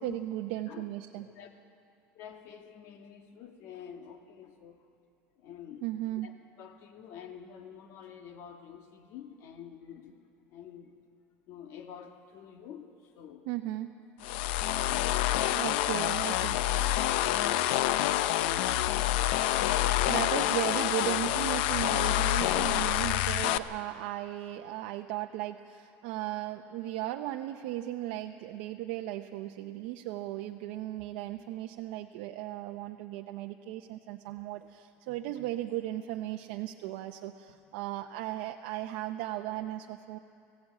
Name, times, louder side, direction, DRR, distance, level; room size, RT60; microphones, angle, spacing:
voice 1, 0.0-1.3 5.8-6.3 13.5-13.9 15.5-16.6 20.1-40.2, right 14 dB, 70° right, 4 dB, 0.7 m, -36 dB
voice 2, 1.2-1.5 2.1-4.8 5.4-5.9 6.2-6.3 6.6-10.2 10.5-10.9 11.5-13.5 17.1-19.0 19.8-20.4, left 8 dB, 55° left, 5 dB, 1.5 m, -48 dB
sound 1, 14.2-23.6, left 13 dB, 80° left, 0.6 m, -27 dB
19.0 x 16.5 x 8.4 m, 2.6 s
cardioid pair, 150°, 6 cm